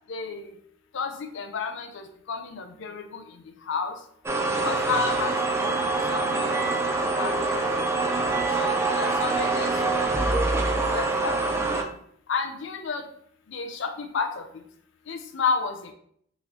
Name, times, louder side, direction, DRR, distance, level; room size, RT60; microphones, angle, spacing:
voice 1, 0.1-0.5 0.9-3.0 3.7-3.9 4.5-5.3 6.1-6.8 7.2-7.8 8.6-10.0 10.9-11.7 12.3-13.0 13.5-14.4 15.1-15.7, left 5 dB, 65° left, 6 dB, 0.5 m, -31 dB
sound 1, 4.3-11.8, right 3 dB, 15° right, 0.3 m, -25 dB
3.6 x 3.0 x 3.0 m, 0.64 s
head